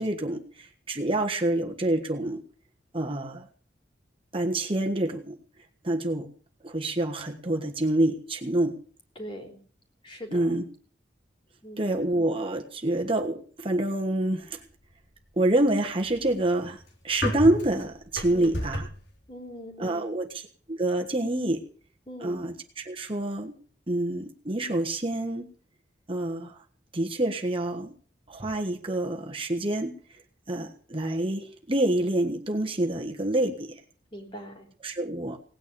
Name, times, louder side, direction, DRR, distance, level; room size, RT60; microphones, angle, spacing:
voice 1, 0.0-2.4 2.9-3.5 4.3-5.4 5.8-6.3 6.6-8.7 10.3-10.6 11.8-14.6 15.4-18.9 19.8-21.7 22.2-23.5 23.9-25.5 26.1-26.6 26.9-27.9 28.3-29.9 30.5-33.8 34.8-35.4, right 1 dB, 30° right, 2 dB, 1.4 m, -27 dB
voice 2, 9.2-9.6 10.0-10.6 11.6-11.9 18.3-18.5 19.3-20.1 22.1-22.4 34.1-34.7, equal, 30° left, 3 dB, 3.6 m, -41 dB
sound 1, 15.9-19.1, left 1 dB, 75° left, 3.4 m, -33 dB
18.0 x 9.6 x 6.9 m, 0.43 s
head